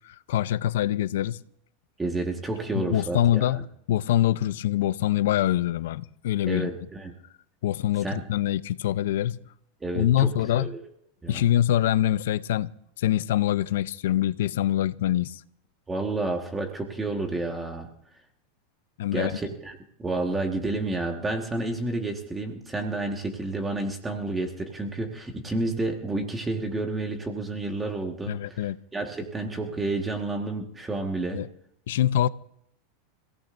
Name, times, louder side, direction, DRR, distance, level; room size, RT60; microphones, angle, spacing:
voice 1, 0.0-1.4 2.7-6.7 7.6-9.4 9.9-10.7 11.3-12.7 13.0-15.4 19.0-19.4 28.3-28.8 31.3-31.5 31.9-32.3, left 12 dB, 80° left, 0.5 m, -24 dB
voice 2, 2.0-3.6 6.5-7.1 8.0-8.2 9.8-10.8 11.2-11.4 15.9-17.9 19.1-31.4, right 2 dB, 10° right, 1.5 m, -30 dB
29.0 x 16.5 x 2.6 m
supercardioid pair, 145°, 0 cm